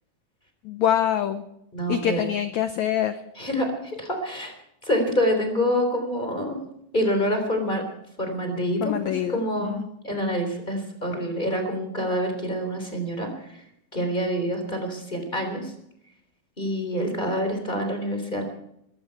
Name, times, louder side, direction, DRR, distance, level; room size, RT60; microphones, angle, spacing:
voice 1, 0.6-1.4 1.9-3.2 8.8-9.9, left 10 dB, 85° left, 10 dB, 1.6 m, -25 dB
voice 2, 1.7-2.2 3.4-3.7 4.0-4.5 4.8-6.6 6.9-7.8 8.2-8.9 9.3-9.8 10.0-13.5 13.9-15.7 16.6-18.4, equal, 15° left, 5 dB, 3.2 m, -26 dB
21.5 x 14.0 x 4.6 m, 0.77 s
omnidirectional pair, 4.3 m